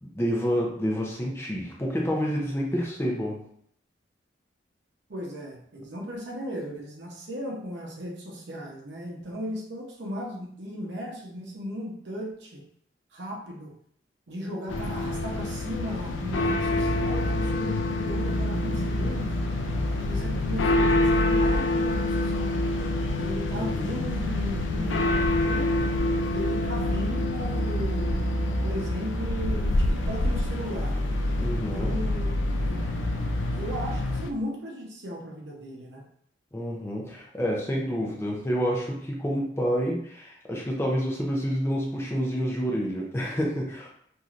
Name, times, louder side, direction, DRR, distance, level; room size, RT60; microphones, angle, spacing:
voice 1, 0.0-3.4 23.5-23.9 31.4-31.9 36.5-43.9, equal, 15° left, -2 dB, 0.4 m, -28 dB
voice 2, 5.1-12.6 13.1-13.7 14.3-19.3 20.0-25.7 26.3-28.2 28.6-31.0 31.5-32.3 32.7-33.1 33.5-36.0, equal, 70° right, -1 dB, 0.7 m, -36 dB
sound 1, 14.7-34.3, left 2 dB, 80° left, 0.3 m, -28 dB
sound 2, 16.3-16.4 16.7-17.5 18.1-21.6 21.9-23.1 24.1-34.2, right 1 dB, 40° right, 0.5 m, -31 dB
3.1 x 2.6 x 2.4 m, 0.67 s
head